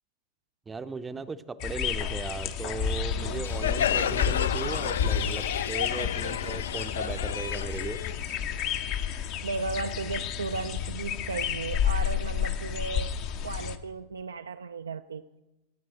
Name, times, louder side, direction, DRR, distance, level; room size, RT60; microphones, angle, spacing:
voice 1, 0.7-8.0, right 4 dB, 15° right, 0.6 m, -37 dB
sound 1, 1.6-13.8, left 8 dB, 40° left, 0.8 m, -31 dB
voice 2, 3.1-3.5 9.4-13.2 13.4-15.2, right 4 dB, 70° right, 0.4 m, -35 dB
Crowd, 3.4-8.9, left 9 dB, 60° left, 0.3 m, -31 dB
16.5 x 7.4 x 7.6 m
figure-of-eight pair, 90°, 0 cm